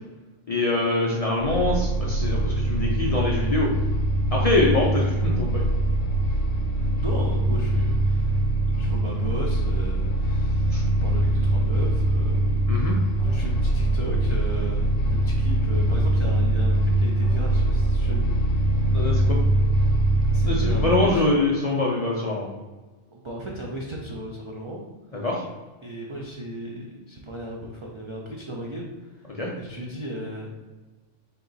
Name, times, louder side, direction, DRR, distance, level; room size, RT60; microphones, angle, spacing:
voice 1, 0.5-3.7 4.3-5.6 10.7-10.8 12.7-13.0 18.9-19.4 20.5-22.5 25.2-25.4 29.4-29.5, left 2 dB, 50° left, -3 dB, 0.4 m, -24 dB
sound 1, 1.4-20.9, right 1 dB, 85° left, 0.9 m, -23 dB
voice 2, 6.9-8.4 8.8-12.6 13.2-14.9 15.2-18.7 19.0-19.1 20.3-21.3 23.1-24.8 25.8-30.7, right 1 dB, 50° right, -2 dB, 0.3 m, -36 dB
3.7 x 2.9 x 3.9 m, 1.2 s
omnidirectional pair, 1.2 m